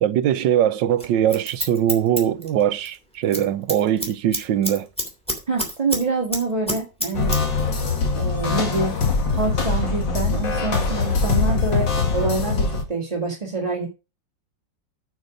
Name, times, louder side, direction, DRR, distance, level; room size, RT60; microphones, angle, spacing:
voice 1, 0.0-4.9, right 10 dB, 80° right, 1.4 m, -21 dB
Scissors, 1.0-3.0 3.2-3.4 3.7-6.0 6.3-7.4 7.7-7.8, equal, 5° left, 3.1 m, -27 dB
voice 2, 5.5-7.4 8.1-9.0 9.3-13.9, right 3 dB, 20° right, 2.2 m, -26 dB
sound 1, 7.1-12.8, left 4 dB, 75° left, 2.8 m, -22 dB
9.3 x 7.4 x 5.2 m
omnidirectional pair, 2.0 m